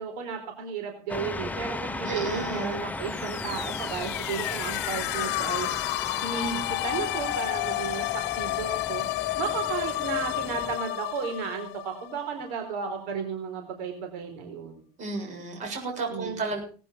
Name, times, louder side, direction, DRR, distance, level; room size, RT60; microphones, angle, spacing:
voice 1, 0.0-5.7 6.2-9.0 9.4-14.8 16.1-16.4, right 6 dB, 90° right, 4 dB, 4.2 m, -34 dB
sound 1, 1.1-10.8, left 2 dB, 10° left, 0.8 m, -37 dB
voice 2, 2.0-2.7 15.0-16.6, right 3 dB, 40° right, 2 dB, 7.7 m, -32 dB
sound 2, 3.0-12.8, left 18 dB, 60° left, 0.8 m, -31 dB
19.0 x 10.5 x 5.1 m, 0.40 s
cardioid pair, 135°, 19 cm